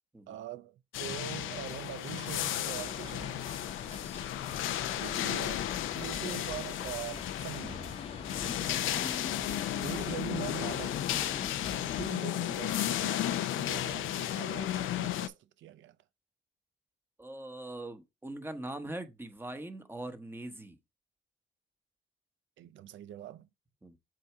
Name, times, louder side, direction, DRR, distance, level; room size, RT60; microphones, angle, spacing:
voice 1, 0.3-3.5 5.0-5.7 5.9-8.0 9.7-11.5 11.9-16.0 22.6-23.5, right 12 dB, 75° right, 0.6 m, -43 dB
sound 1, 0.9-15.3, left 12 dB, 80° left, 0.6 m, -34 dB
sound 2, 2.7-12.1, left 4 dB, 30° left, 1.0 m, -44 dB
voice 2, 17.2-20.8 23.8-24.0, right 1 dB, 10° right, 1.2 m, -42 dB
7.7 x 2.7 x 4.7 m
cardioid pair, 90°, 20 cm